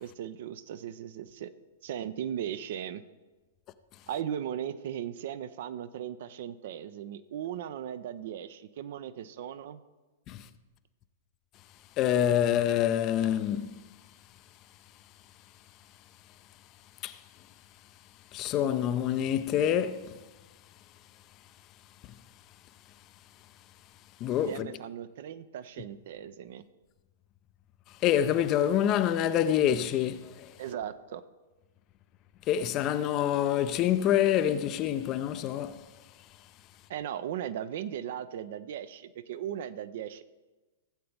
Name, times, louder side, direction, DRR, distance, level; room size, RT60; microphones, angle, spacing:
voice 1, 0.0-1.5 1.8-3.0 4.1-9.8 24.5-26.6 30.6-31.2 36.9-40.2, right 10 dB, 50° right, 0.5 m, -37 dB
voice 2, 12.0-13.7 17.0-17.1 18.3-20.1 24.2-24.7 28.0-30.5 32.5-35.8, left 10 dB, 35° left, 0.5 m, -26 dB
16.0 x 7.7 x 3.4 m
figure-of-eight pair, 105°, 0 cm